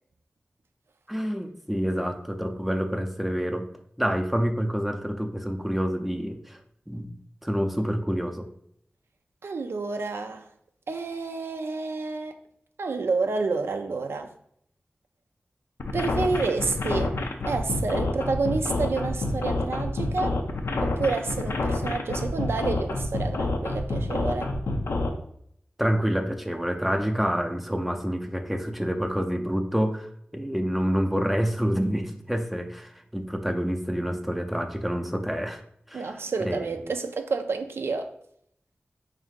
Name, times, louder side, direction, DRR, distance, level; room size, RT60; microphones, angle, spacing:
voice 1, 1.1-3.7 4.0-6.6 6.9-7.2 7.4-8.5 25.8-35.6 35.9-36.1 36.4-36.6, equal, 5° right, 0.4 m, -27 dB
voice 2, 9.4-10.5 10.9-12.3 12.8-14.3 15.9-20.4 20.8-24.5 35.9-38.1, right 4 dB, 80° right, 0.3 m, -29 dB
sound 1, 15.8-25.1, left 2 dB, 85° left, 0.4 m, -27 dB
3.5 x 2.7 x 3.6 m
wide cardioid pair, 60°, 4 cm